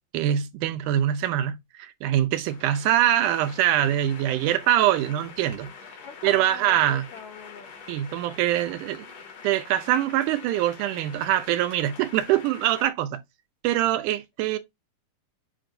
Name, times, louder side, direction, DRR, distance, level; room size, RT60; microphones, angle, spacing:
voice 1, 0.1-5.7 6.2-7.0 7.9-9.0 9.4-13.2 13.6-14.6, right 12 dB, 80° right, 1.9 m, -24 dB
sound 1, 2.5-12.8, left 5 dB, 60° left, 2.4 m, -45 dB
voice 2, 6.0-7.7, left 6 dB, 90° left, 1.3 m, -43 dB
7.4 x 2.6 x 2.5 m
omnidirectional pair, 3.8 m